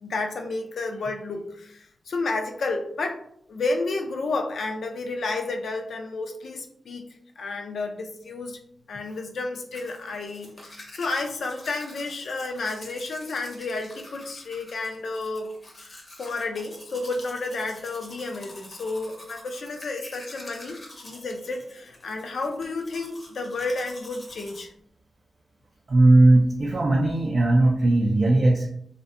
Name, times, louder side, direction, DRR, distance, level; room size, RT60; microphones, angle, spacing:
voice 1, 0.0-3.2 3.5-7.1 7.4-8.6 8.9-24.7, left 3 dB, 75° left, 4 dB, 0.4 m, -31 dB
Domestic sounds home sounds, 9.7-24.6, left 1 dB, 30° left, 0.6 m, -46 dB
voice 2, 25.9-28.7, right 2 dB, 45° right, -1 dB, 0.3 m, -18 dB
2.6 x 2.1 x 2.4 m, 0.69 s
wide cardioid pair, 105°, 0 cm